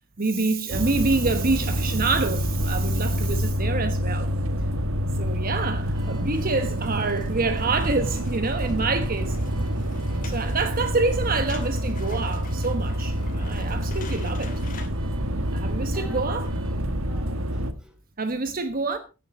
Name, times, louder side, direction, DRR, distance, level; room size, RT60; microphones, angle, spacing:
voice 1, 0.2-4.3 5.2-9.3 10.2-14.6 15.5-16.5 18.2-19.0, right 3 dB, 45° right, 1.2 m, -27 dB
sound 1, 0.7-17.7, equal, 85° right, 1.3 m, -27 dB
voice 2, 3.0-3.4 8.6-8.9 15.3-16.4 16.7-18.0, right 2 dB, 5° right, 3.4 m, -49 dB
Car / Alarm, 5.4-16.8, right 1 dB, 25° right, 3.6 m, -53 dB
sound 2, 5.8-14.9, left 5 dB, 40° left, 2.6 m, -47 dB
16.0 x 10.5 x 4.3 m
head